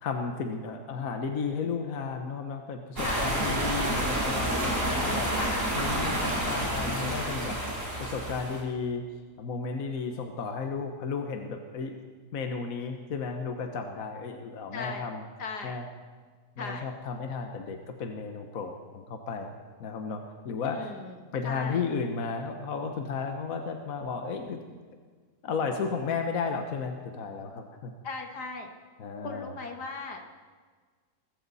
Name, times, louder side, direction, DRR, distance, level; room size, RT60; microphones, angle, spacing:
voice 1, 0.0-5.4 5.7-7.6 8.0-9.0 9.4-11.9 12.3-15.3 15.6-15.9 16.6-19.5 19.8-20.9 21.3-24.6 25.4-27.9 29.0-29.5, left 5 dB, 60° left, 5 dB, 1.5 m, -33 dB
voice 2, 3.0-3.4 5.4-5.6 14.7-15.1 15.4-15.8 16.6-16.9 20.6-21.8 28.0-28.7 29.2-30.2, left 4 dB, 80° left, 3 dB, 2.3 m, -37 dB
sound 1, 3.0-8.6, right 1 dB, 50° right, 4.9 m, -29 dB
20.0 x 15.5 x 4.1 m, 1.5 s
omnidirectional pair, 1.7 m